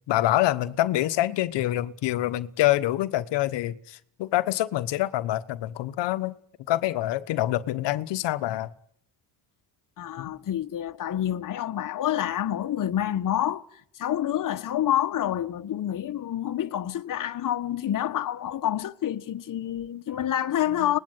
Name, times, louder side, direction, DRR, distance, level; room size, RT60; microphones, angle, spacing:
voice 1, 0.1-6.3 6.7-8.7 10.2-10.3, left 15 dB, 80° left, 1.3 m, -26 dB
voice 2, 10.0-13.6 13.9-21.0, left 11 dB, 50° left, 1.4 m, -28 dB
26.0 x 20.0 x 9.4 m
cardioid pair, 115°, 42 cm